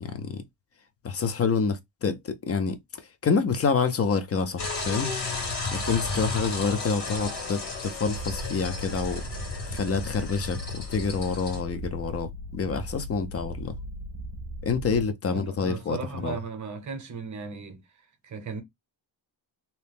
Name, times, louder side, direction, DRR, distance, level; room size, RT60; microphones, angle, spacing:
voice 1, 0.0-0.4 1.0-5.1 5.7-9.2 9.7-13.7 14.6-16.4, left 5 dB, 30° left, 0.5 m, -28 dB
sound 1, 4.6-11.6, left 3 dB, 60° left, 1.7 m, -33 dB
Purr, 8.0-15.0, equal, 80° right, 0.6 m, -38 dB
voice 2, 15.3-17.8 18.2-18.6, right 6 dB, 40° right, 0.8 m, -36 dB
2.8 x 2.0 x 3.3 m
cardioid pair, 125°, 47 cm